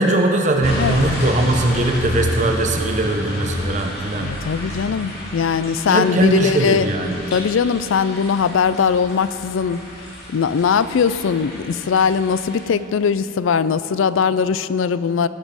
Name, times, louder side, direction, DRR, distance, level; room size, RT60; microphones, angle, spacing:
voice 1, 0.0-4.3 5.9-7.2, right 1 dB, 35° right, 3 dB, 0.7 m, -20 dB
sound 1, 0.6-12.6, left 1 dB, 50° left, 2.5 m, -29 dB
voice 2, 4.1-6.9 7.3-9.8 10.3-15.3, left 6 dB, 75° left, 15 dB, 0.4 m, -20 dB
17.0 x 7.3 x 5.3 m, 2.9 s
head